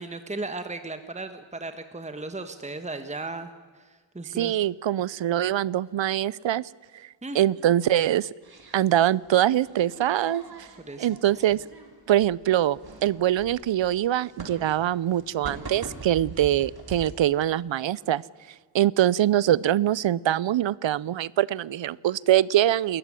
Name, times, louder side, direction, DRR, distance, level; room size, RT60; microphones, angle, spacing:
voice 1, 0.0-3.5 3.7-4.5 7.2-7.4 10.8-11.1, right 3 dB, 15° right, 9 dB, 1.3 m, -36 dB
voice 2, 4.3-6.7 7.3-8.3 8.7-10.7 11.0-11.6 12.1-18.2 18.7-23.0, right 12 dB, 85° right, 23 dB, 0.6 m, -23 dB
sound 1, 8.4-17.1, right 3 dB, 55° right, 3.9 m, -44 dB
28.0 x 14.0 x 9.8 m, 1.5 s
wide cardioid pair, 85°, 44 cm